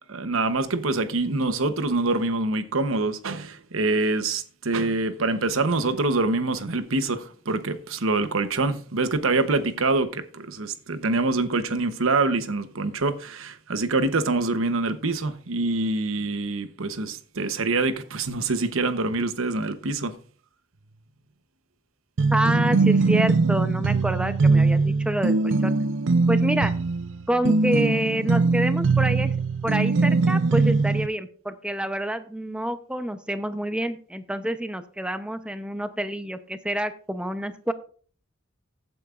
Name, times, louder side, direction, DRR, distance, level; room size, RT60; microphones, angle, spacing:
voice 1, 0.1-20.2, right 3 dB, 90° right, 1.0 m, -25 dB
sound 1, 22.2-31.1, right 3 dB, 65° right, 0.5 m, -21 dB
voice 2, 22.3-25.7 26.3-26.7 27.3-29.3 29.6-37.7, right 1 dB, 5° right, 0.7 m, -28 dB
15.0 x 8.6 x 2.5 m
head